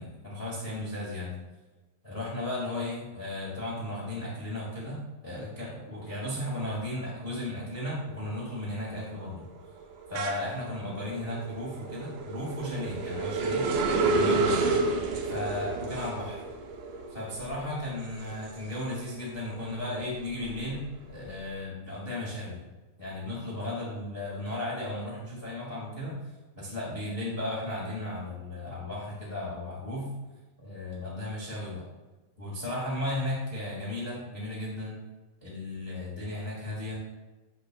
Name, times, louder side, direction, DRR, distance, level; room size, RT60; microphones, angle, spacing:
voice 1, 0.0-1.3 2.0-9.4 10.1-13.7 14.0-14.9 15.3-16.4 17.1-22.6 23.0-26.2 26.5-30.1 30.6-31.8 32.4-35.0 35.4-37.0, left 1 dB, 65° left, -6 dB, 0.5 m, -35 dB
sound 1, 7.2-7.6 8.0-19.3 19.7-21.4, right 3 dB, 80° right, 1.6 m, -31 dB
8.9 x 7.6 x 2.2 m, 1.2 s
omnidirectional pair, 4.3 m